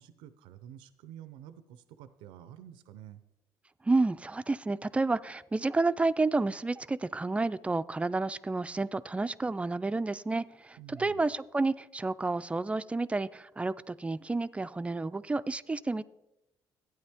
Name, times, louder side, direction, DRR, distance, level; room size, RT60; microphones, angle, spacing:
voice 1, 0.0-3.2 10.8-11.3, right 10 dB, 90° right, 0.5 m, -49 dB
voice 2, 3.8-16.0, right 3 dB, 15° right, 0.3 m, -30 dB
12.0 x 9.0 x 3.5 m
cardioid pair, 90°, 8 cm